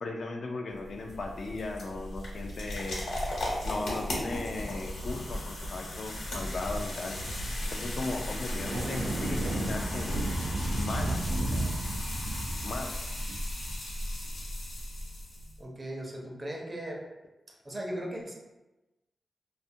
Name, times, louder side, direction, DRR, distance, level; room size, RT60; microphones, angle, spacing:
voice 1, 0.0-3.0 3.6-7.2 7.7-10.2 10.8-11.2 11.5-11.7 12.6-12.9, left 3 dB, 65° left, 3 dB, 0.3 m, -37 dB
sound 1, 0.7-15.6, left 1 dB, 90° left, 0.9 m, -36 dB
sound 2, 8.5-14.1, right 1 dB, 80° right, 0.4 m, -33 dB
voice 2, 15.6-17.0 17.6-18.3, right 1 dB, 30° right, -1 dB, 0.6 m, -37 dB
2.5 x 2.4 x 2.6 m, 1.1 s
cardioid pair, 80°, 0 cm